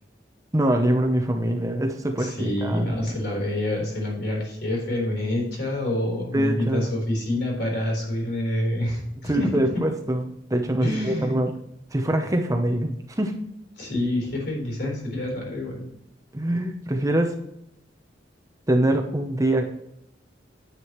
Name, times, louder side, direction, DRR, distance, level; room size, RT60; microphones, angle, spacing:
voice 1, 0.5-2.9 6.3-6.9 9.2-10.2 10.5-11.5 11.9-13.3 16.3-17.3 18.7-19.7, right 1 dB, 20° right, 4 dB, 0.8 m, -24 dB
voice 2, 2.2-9.5 10.8-11.4 13.8-15.9, left 1 dB, 60° left, -1 dB, 4.0 m, -27 dB
9.7 x 9.1 x 3.1 m, 0.79 s
head